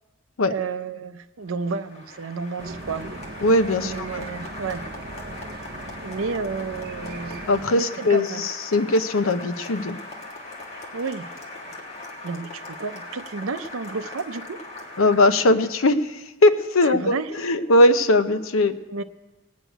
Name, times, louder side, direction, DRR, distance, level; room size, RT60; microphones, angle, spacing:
voice 1, 0.5-3.1 3.8-4.8 6.0-8.4 10.9-11.3 12.2-14.6 16.9-17.3 18.9-19.0, right 4 dB, 85° right, 9 dB, 0.6 m, -31 dB
Applause, 1.4-15.9, left 2 dB, 30° left, 1.8 m, -40 dB
sound 1, 2.6-7.6, right 2 dB, 45° right, 0.7 m, -39 dB
voice 2, 3.4-4.3 7.5-10.0 15.0-18.8, left 2 dB, 85° left, 10 dB, 0.7 m, -20 dB
18.0 x 6.5 x 9.1 m, 1.2 s
head